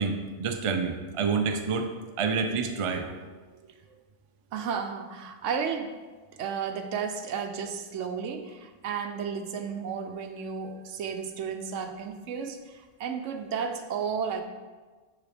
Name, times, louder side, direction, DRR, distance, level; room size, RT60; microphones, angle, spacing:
voice 1, 0.0-1.9 2.2-3.1, right 5 dB, 45° right, 5 dB, 0.4 m, -28 dB
voice 2, 4.5-6.0 6.3-14.4, right 6 dB, 80° right, 7 dB, 1.0 m, -33 dB
9.6 x 4.1 x 3.4 m, 1.3 s
omnidirectional pair, 1.3 m